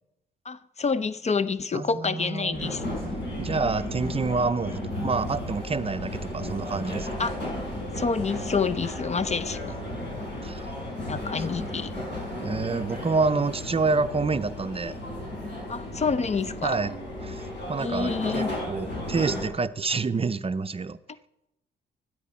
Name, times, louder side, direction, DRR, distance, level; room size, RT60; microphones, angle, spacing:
voice 1, 0.4-2.8 6.5-6.6 7.2-7.3 8.0-9.6 10.9-11.9 15.7-16.8 17.8-18.5, left 5 dB, 35° left, 0.6 m, -28 dB
voice 2, 1.7-2.7 3.4-7.1 9.9-10.0 10.4-10.7 12.4-15.0 16.6-16.9 17.2-17.4 17.7-21.0, right 4 dB, 30° right, 0.6 m, -28 dB
sound 1, 2.5-19.5, left 1 dB, 65° left, 4.9 m, -34 dB
13.0 x 10.0 x 4.3 m
supercardioid pair, 55°, 20 cm